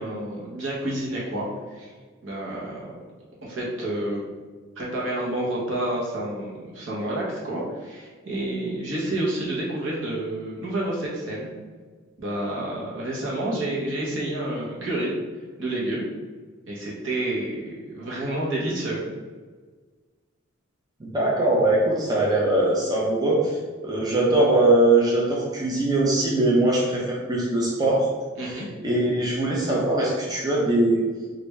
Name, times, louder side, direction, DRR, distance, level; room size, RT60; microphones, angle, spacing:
voice 1, 0.0-1.5 1.7-1.9 2.2-2.9 3.4-4.2 4.8-11.5 12.2-15.1 15.6-16.1 16.7-19.0 28.4-28.7, right 1 dB, 65° right, -4 dB, 1.0 m, -29 dB
voice 2, 21.0-23.6 23.8-28.1 28.4-31.0, right 2 dB, 20° right, -4 dB, 0.5 m, -21 dB
3.4 x 2.5 x 3.1 m, 1.4 s
head